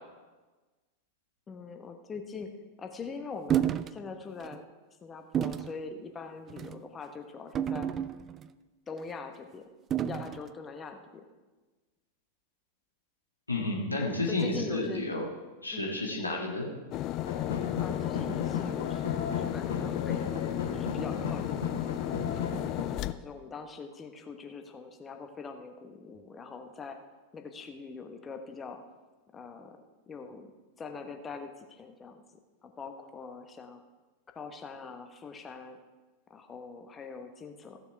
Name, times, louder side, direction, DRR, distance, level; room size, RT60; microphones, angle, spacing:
voice 1, 1.5-2.5 2.8-4.6 5.0-7.9 8.9-9.7 10.1-11.2 14.3-15.1 15.7-15.9 17.8-22.5 23.1-27.0 27.3-28.8 29.3-29.8 30.1-30.5 30.8-32.2 32.6-33.8 34.3-35.8 36.3-37.8, left 5 dB, 20° left, 5 dB, 1.1 m, -43 dB
sound 1, 3.5-3.9 4.4-4.6 5.3-5.7 6.5-6.8 7.6-8.5 9.9-10.4, right 10 dB, 25° right, 0.4 m, -30 dB
voice 2, 13.5-15.3 15.6-16.7, left 2 dB, 80° left, -1 dB, 1.9 m, -31 dB
sound 2, 16.9-23.1, left 13 dB, 40° left, 0.4 m, -33 dB
sound 3, 17.2-22.8, left 5 dB, 65° left, 1.3 m, -36 dB
15.0 x 7.0 x 4.7 m, 1.3 s
figure-of-eight pair, 90°, 0 cm